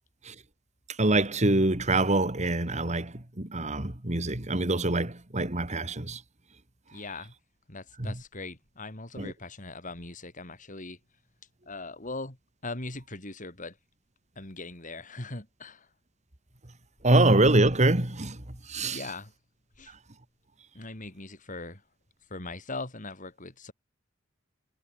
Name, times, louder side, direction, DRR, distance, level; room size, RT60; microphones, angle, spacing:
voice 1, 1.0-6.2 9.2-9.3 17.0-18.4 18.7-19.0, right 2 dB, 35° right, 2.4 m, -24 dB
voice 2, 6.9-7.3 7.7-11.0 11.7-12.4 12.6-13.8 14.4-15.9 18.9-19.3 19.8-19.9 20.7-21.8 22.3-23.7, left 2 dB, 40° left, 4.2 m, -40 dB
head